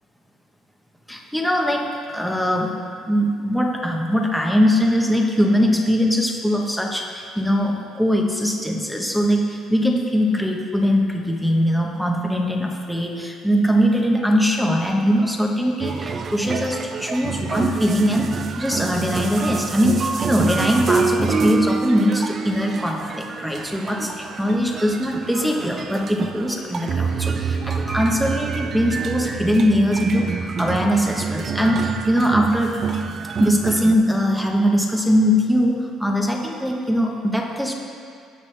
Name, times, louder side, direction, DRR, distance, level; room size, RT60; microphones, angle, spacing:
voice 1, 1.1-2.7 3.1-18.3 18.6-24.1 24.4-32.8 33.4-35.7 36.0-37.7, equal, ahead, 0 dB, 1.1 m, -21 dB
sound 1, 15.8-33.9, right 5 dB, 35° right, 0.4 m, -27 dB
17.0 x 6.2 x 3.4 m, 2.3 s
cardioid pair, 125°, 0 cm